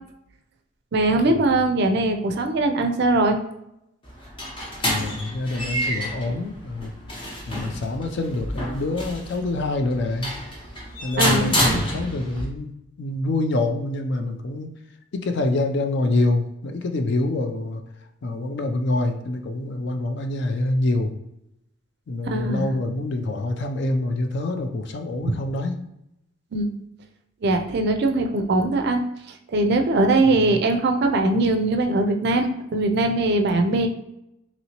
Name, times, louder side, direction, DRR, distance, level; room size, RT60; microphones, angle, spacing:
voice 1, 0.9-3.4 11.2-11.9 22.3-22.6 25.2-25.3 26.5-26.8 27.4-29.0 29.5-33.9, right 2 dB, 50° right, 4 dB, 0.4 m, -21 dB
sound 1, 4.0-12.4, equal, 25° left, 0.7 m, -28 dB
voice 2, 4.8-6.9 7.5-10.3 11.0-12.7 13.0-14.7 15.1-17.8 18.2-21.1 22.1-25.9 30.2-30.6, left 2 dB, 55° left, 5 dB, 0.4 m, -26 dB
3.0 x 2.8 x 2.8 m, 0.84 s
head